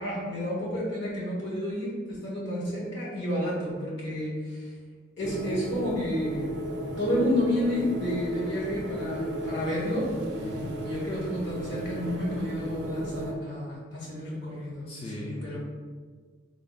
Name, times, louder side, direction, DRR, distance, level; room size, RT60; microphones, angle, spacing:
voice 1, 0.0-4.7 5.2-6.5 7.0-10.0 10.8-15.6, left 1 dB, 60° left, -6 dB, 1.2 m, -31 dB
sound 1, 5.2-13.3, right 1 dB, 55° right, 0.4 m, -34 dB
voice 2, 10.4-10.7 14.9-15.6, left 1 dB, 30° left, -4 dB, 0.3 m, -39 dB
3.6 x 2.0 x 3.9 m, 1.5 s
head